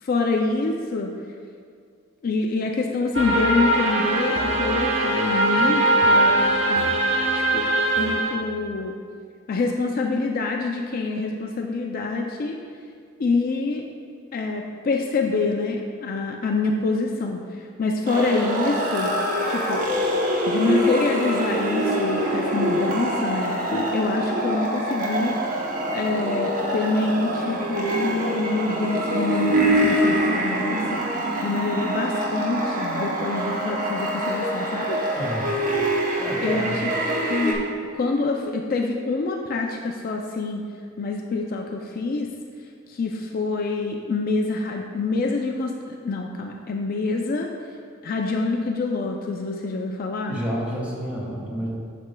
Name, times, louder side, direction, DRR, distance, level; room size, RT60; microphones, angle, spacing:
voice 1, 0.0-1.2 2.2-6.9 7.2-7.7 8.0-8.9 9.5-12.6 13.2-13.8 14.3-19.2 19.5-19.9 20.5-31.1 31.4-35.0 36.1-37.6 37.9-40.7 41.0-42.3 42.9-47.5 48.0-50.4, left 3 dB, 45° left, 2 dB, 0.4 m, -26 dB
sound 1, 3.1-8.4, right 1 dB, 70° right, 0.9 m, -21 dB
sound 2, 18.1-37.5, right 1 dB, 45° right, 0.8 m, -25 dB
voice 2, 35.1-35.5 36.2-36.8 50.3-51.7, equal, 5° right, -6 dB, 1.6 m, -30 dB
9.3 x 6.0 x 2.3 m, 2.1 s
head